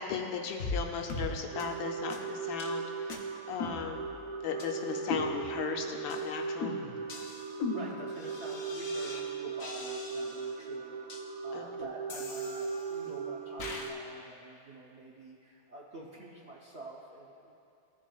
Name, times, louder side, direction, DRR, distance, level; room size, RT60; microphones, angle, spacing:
voice 1, 0.0-3.2 3.5-6.8 11.5-11.6, left 6 dB, 75° left, 3 dB, 1.4 m, -36 dB
sound 1, 0.6-0.8 1.1-1.3 1.6-1.7 2.1-2.2 2.6-2.7 3.1-3.2 3.6-4.2 4.6-4.7 5.1-5.7 6.1-6.2 6.6-9.2 9.6-10.5 11.1-11.2 12.1-13.1 13.6-13.9, left 3 dB, 55° left, 1.0 m, -39 dB
sound 2, 1.5-13.9, right 5 dB, 80° right, 1.5 m, -38 dB
voice 2, 7.6-11.1 11.4-17.5, right 2 dB, 60° right, -3 dB, 0.7 m, -47 dB
16.5 x 7.2 x 2.3 m, 2.5 s
omnidirectional pair, 2.3 m